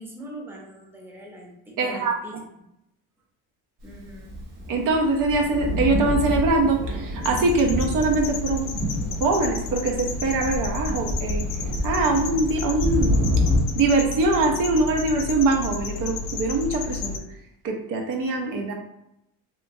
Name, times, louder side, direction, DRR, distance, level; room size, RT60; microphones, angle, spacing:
voice 1, 0.0-2.4 3.8-4.4, equal, 5° right, -2 dB, 0.7 m, -41 dB
voice 2, 1.8-2.2 4.7-8.7 9.2-11.4 11.8-13.2 13.8-17.2 17.6-18.7, right 3 dB, 55° right, 2 dB, 0.6 m, -23 dB
Thunder, 4.1-13.6, left 1 dB, 75° right, 1.2 m, -27 dB
sound 1, 7.2-17.2, left 4 dB, 70° left, 0.5 m, -32 dB
2.9 x 2.2 x 2.6 m, 0.81 s
cardioid pair, 105°, 39 cm